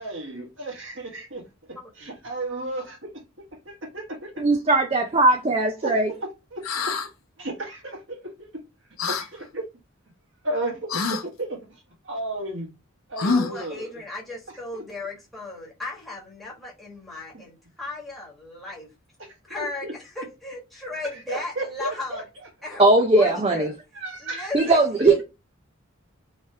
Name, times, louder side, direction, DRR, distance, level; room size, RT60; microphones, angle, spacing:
voice 1, 0.0-1.5 1.9-3.2 3.6-4.4 5.8-6.9 7.4-8.5 9.0-9.6 10.4-12.7 13.1-14.0 14.7-14.8 17.3-17.4 19.2-19.9 21.1-22.5 23.2-23.3 23.9-24.8, right 1 dB, 65° right, 1.5 m, -34 dB
voice 2, 1.7-2.1 13.2-18.9 19.5-19.8 20.1-22.2 22.6-22.9 23.1-23.7 24.2-24.8 25.0-25.2, left 2 dB, ahead, 1.5 m, -35 dB
voice 3, 4.4-6.1 22.8-23.7 24.5-25.2, right 2 dB, 25° right, 0.4 m, -19 dB
sound 1, 6.6-7.1 9.0-9.3 10.9-11.2 13.2-13.7, left 4 dB, 85° left, 0.8 m, -25 dB
3.2 x 3.0 x 3.2 m
head